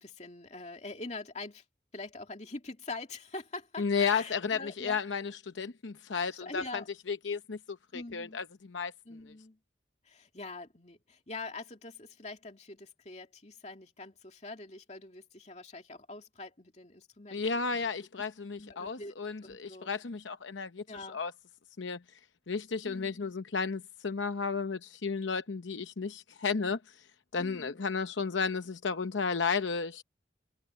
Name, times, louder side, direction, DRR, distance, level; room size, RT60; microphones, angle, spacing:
voice 1, 0.0-1.6 1.9-5.0 6.1-6.9 7.9-8.4 9.0-9.6 10.0-17.9 18.6-19.1 19.4-19.9 20.9-21.2 22.8-23.2 27.4-27.8, left 3 dB, 35° left, 2.7 m, -44 dB
voice 2, 3.8-8.9 17.3-21.3 21.8-22.0 22.5-27.0 27.3-30.0, left 5 dB, 80° left, 0.8 m, -33 dB
head